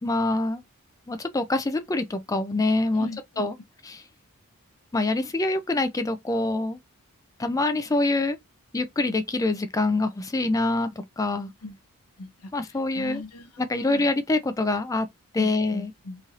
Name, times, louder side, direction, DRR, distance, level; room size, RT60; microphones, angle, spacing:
voice 1, 0.0-0.6 1.1-3.1 3.4-3.5 3.9-4.0 4.9-6.8 7.4-8.4 8.7-10.9 11.2-11.5 12.5-13.2 13.6-15.1 15.3-15.9, left 2 dB, 15° left, 0.3 m, -25 dB
voice 2, 2.9-3.5 11.6-11.8 12.2-14.1 15.4-16.2, left 2 dB, 80° left, 0.7 m, -40 dB
3.1 x 2.7 x 2.4 m
head